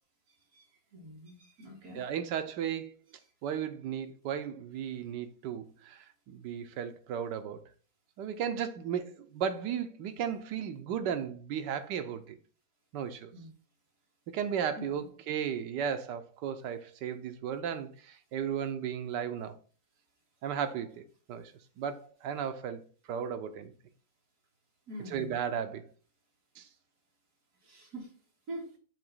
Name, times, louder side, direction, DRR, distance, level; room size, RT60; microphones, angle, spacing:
voice 1, 0.9-2.0 13.3-13.5 14.8-14.9 24.9-25.3 27.6-28.1 28.5-28.7, right 1 dB, 60° right, 2.5 m, -44 dB
voice 2, 1.9-2.9 3.4-7.7 8.2-12.4 12.9-13.3 14.3-19.6 20.4-21.0 21.3-22.8 23.1-23.7 25.0-25.8 26.6-26.7, right 8 dB, 85° right, 1.3 m, -35 dB
7.4 x 2.9 x 5.4 m
omnidirectional pair, 1.8 m